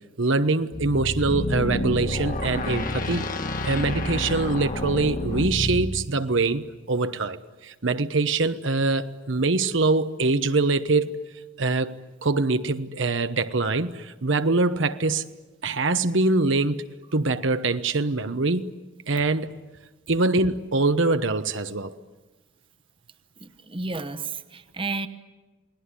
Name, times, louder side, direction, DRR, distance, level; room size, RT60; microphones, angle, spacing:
voice 1, 0.2-3.3 3.6-11.1 11.6-12.0 12.2-15.3 15.6-16.8 17.1-18.7 19.1-19.5 20.1-21.9, right 3 dB, 70° right, 1.0 m, -24 dB
sound 1, 0.7-6.0, left 1 dB, 45° left, 1.7 m, -29 dB
voice 2, 23.4-25.1, right 3 dB, 25° right, 1.0 m, -32 dB
29.0 x 20.0 x 9.8 m
head